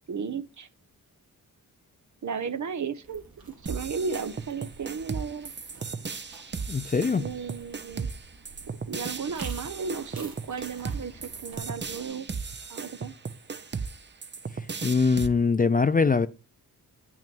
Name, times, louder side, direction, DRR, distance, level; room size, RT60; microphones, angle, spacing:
voice 1, 0.1-0.7 2.2-3.2 3.6-5.5 7.2-8.1 8.9-12.3 12.7-13.1, right 5 dB, 55° right, 1.0 m, -34 dB
sound 1, 3.0-12.1, right 4 dB, 70° right, 2.5 m, -50 dB
sound 2, 3.7-15.3, right 5 dB, 30° right, 0.7 m, -36 dB
voice 2, 6.7-7.2 14.8-16.3, left 4 dB, 25° left, 0.4 m, -22 dB
8.7 x 6.1 x 4.5 m
wide cardioid pair, 105°, 36 cm